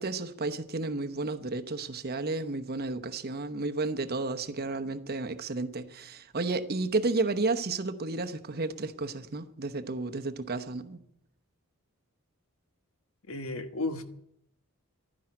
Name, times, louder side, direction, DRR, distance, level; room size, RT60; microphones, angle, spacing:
voice 1, 0.0-11.0, right 3 dB, 45° right, 0.9 m, -32 dB
voice 2, 13.3-14.0, left 2 dB, 65° left, 1.4 m, -33 dB
12.5 x 10.5 x 9.8 m
head